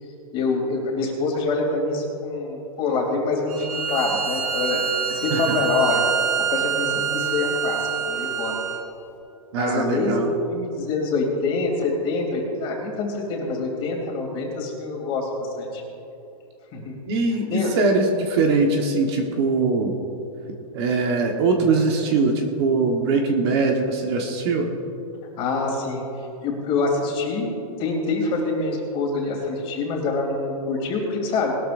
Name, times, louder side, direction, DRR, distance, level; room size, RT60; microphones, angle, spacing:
voice 1, 0.3-4.8 5.1-6.0 6.5-8.5 9.5-15.8 16.7-17.0 17.5-17.8 25.4-26.0 26.4-27.5 27.8-31.5, left 3 dB, 25° left, 0 dB, 3.0 m, -25 dB
Bowed string instrument, 3.5-8.9, right 8 dB, 60° right, 2.2 m, -26 dB
voice 2, 9.5-10.3 17.1-20.0 20.7-24.7, right 3 dB, 40° right, 2 dB, 1.4 m, -22 dB
20.0 x 13.0 x 2.6 m, 2.9 s
hypercardioid pair, 155°, 19 cm